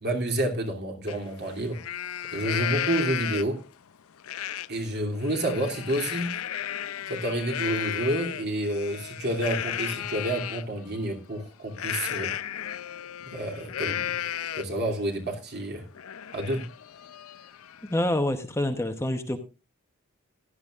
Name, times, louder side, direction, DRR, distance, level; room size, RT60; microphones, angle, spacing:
voice 1, 0.0-1.8 2.3-3.6 4.7-6.4 7.1-12.3 13.3-14.2 14.6-15.9 16.3-16.7, right 1 dB, 50° right, 2.8 m, -29 dB
Livestock farm animals working animals, 1.1-1.2 1.6-3.7 4.2-4.7 5.1-10.6 11.7-14.8 15.3-15.4 15.7-18.1, left 10 dB, 75° left, 0.5 m, -34 dB
voice 2, 17.9-19.4, left 1 dB, 15° left, 0.9 m, -26 dB
16.0 x 11.5 x 2.4 m
head